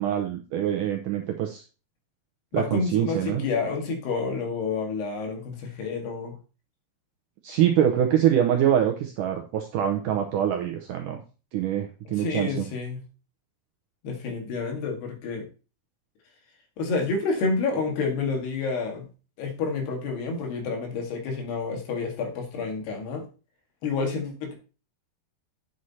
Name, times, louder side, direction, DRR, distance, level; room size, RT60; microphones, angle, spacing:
voice 1, 0.0-1.6 2.5-3.4 7.4-11.2 11.5-12.7, right 10 dB, 75° right, 3 dB, 1.9 m, -24 dB
voice 2, 2.5-6.4 12.1-13.0 14.0-15.5 16.8-19.1 19.4-23.2 23.8-24.5, left 4 dB, 80° left, 2 dB, 4.1 m, -29 dB
9.3 x 6.4 x 4.2 m, 0.34 s
omnidirectional pair, 4.7 m